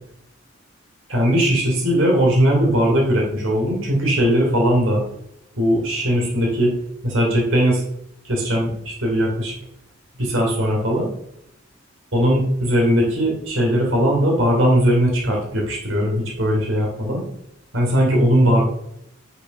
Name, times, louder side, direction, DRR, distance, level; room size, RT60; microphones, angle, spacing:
voice 1, 1.1-5.0 5.5-6.7 7.0-7.8 8.2-9.5 10.2-11.1 12.1-17.2 17.7-18.6, equal, 70° right, -1 dB, 3.0 m, -19 dB
8.0 x 6.9 x 5.9 m, 0.79 s
head